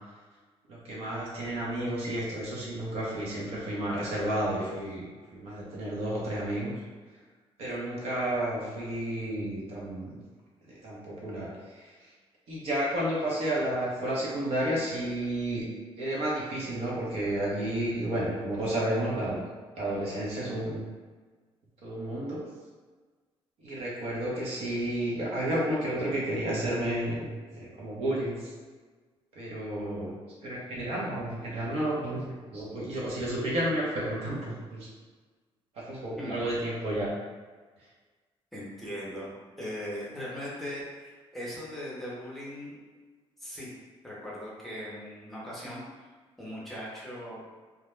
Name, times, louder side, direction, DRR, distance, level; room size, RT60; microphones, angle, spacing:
voice 1, 0.7-6.7 7.6-10.2 10.7-11.9 12.5-15.6 16.0-19.4 19.8-20.8 21.8-22.4 23.6-28.5 29.3-30.1 30.4-34.9 35.7-37.1, right 1 dB, 70° right, -5 dB, 0.8 m, -31 dB
voice 2, 38.5-39.3 39.6-42.7 43.4-43.7 44.0-45.8 46.4-47.5, equal, ahead, -7 dB, 0.6 m, -39 dB
2.3 x 2.1 x 3.0 m, 1.4 s
cardioid pair, 180°, 11 cm